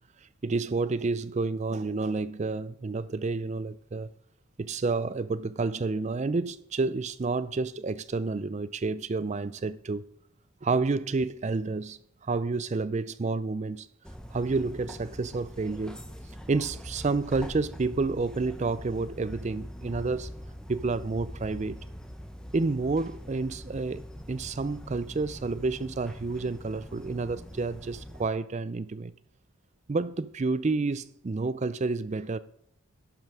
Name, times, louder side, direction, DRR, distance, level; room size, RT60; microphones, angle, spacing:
voice 1, 0.4-4.1 4.6-10.0 10.6-13.9 14.3-16.1 16.5-20.3 20.7-21.8 22.5-29.1 29.9-32.4, right 3 dB, 30° right, 0.4 m, -30 dB
sound 1, 14.0-28.3, equal, 5° left, 0.7 m, -43 dB
11.5 x 5.4 x 6.1 m
head